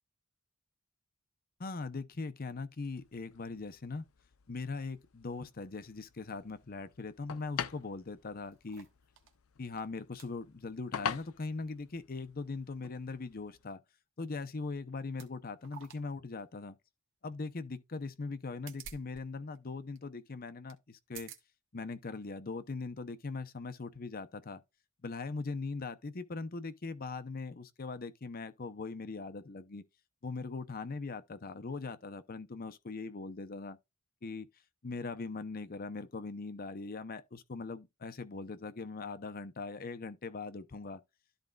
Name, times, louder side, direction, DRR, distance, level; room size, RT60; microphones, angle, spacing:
voice 1, 1.6-4.0 4.5-8.9 9.6-13.8 14.2-16.8 17.2-21.3 21.7-24.6 25.0-29.8 30.2-33.8 34.2-34.5 34.8-41.0, left 3 dB, 45° left, 0.7 m, -40 dB
sound 1, 2.8-13.7, left 7 dB, 80° left, 0.6 m, -46 dB
sound 2, 8.1-9.4 9.8-9.9 10.2-10.3 10.9-11.2 11.5-11.6 14.3-14.5 15.1-15.3 15.6-16.0 16.4-16.5 18.3-19.2 19.5-19.6 20.0-20.1 20.7-20.8 21.1-21.4 22.1-22.2, right 7 dB, 60° right, 1.2 m, -51 dB
13.0 x 4.3 x 2.4 m
head